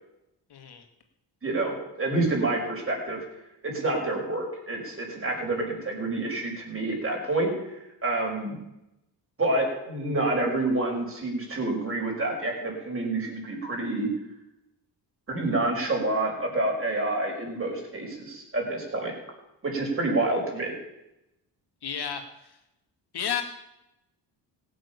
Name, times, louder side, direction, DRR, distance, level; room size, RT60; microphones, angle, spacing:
voice 1, 0.5-0.8 21.8-22.6 23.1-23.4, left 8 dB, 60° left, 6 dB, 2.3 m, -32 dB
voice 2, 1.4-3.2 3.6-7.5 8.0-8.6 9.4-14.1 15.3-19.1 19.6-20.7, right 2 dB, 30° right, 0 dB, 5.7 m, -28 dB
17.0 x 7.7 x 7.0 m, 0.89 s
cardioid pair, 90°, 44 cm